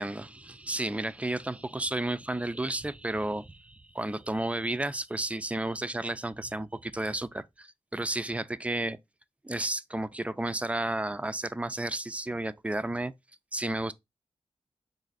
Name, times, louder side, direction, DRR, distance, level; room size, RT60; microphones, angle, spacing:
voice 1, 0.0-9.0 9.4-13.1 13.5-13.9, right 1 dB, 10° right, 0.3 m, -32 dB
4.0 x 2.5 x 3.8 m
cardioid pair, 55°, 11 cm